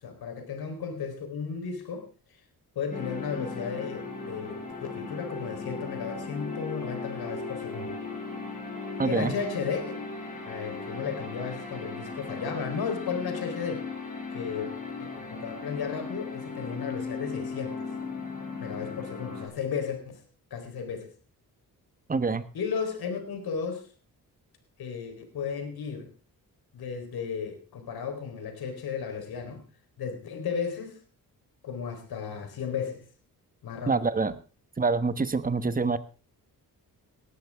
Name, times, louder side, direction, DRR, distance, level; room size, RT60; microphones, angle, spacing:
voice 1, 0.0-2.1 2.8-8.0 9.0-9.8 10.5-13.8 14.3-14.8 15.1-17.9 18.6-20.0 20.5-21.1 22.5-23.9 24.8-26.1 26.7-29.6 30.0-31.0 31.6-33.1 33.6-34.0, left 6 dB, 90° left, 6 dB, 4.0 m, -34 dB
sound 1, 2.9-19.5, left 4 dB, 20° left, 6.6 m, -37 dB
voice 2, 9.0-9.3 22.1-22.4 33.9-34.4 34.8-36.0, right 4 dB, 25° right, 12 dB, 1.2 m, -26 dB
19.0 x 13.0 x 3.6 m, 0.34 s
cardioid pair, 95°, 36 cm